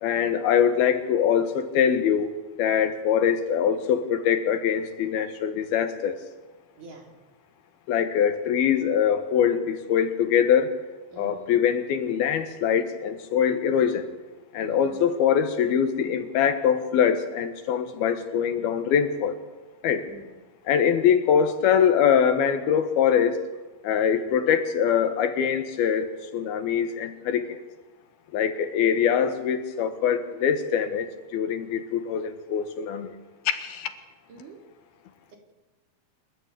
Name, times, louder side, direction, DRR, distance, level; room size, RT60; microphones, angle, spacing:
voice 1, 0.0-2.3 2.6-6.2 7.9-10.7 11.2-14.1 14.5-19.4 19.8-20.1 20.7-23.4 23.8-27.6 28.3-31.1 31.3-33.1 33.5-33.9, left 8 dB, 75° left, 8 dB, 3.3 m, -23 dB
voice 2, 6.8-7.1 11.1-11.6 14.6-15.0 20.1-20.4 34.3-34.6, right 3 dB, 55° right, 1 dB, 5.0 m, -46 dB
27.5 x 13.5 x 8.5 m, 1.3 s
omnidirectional pair, 4.5 m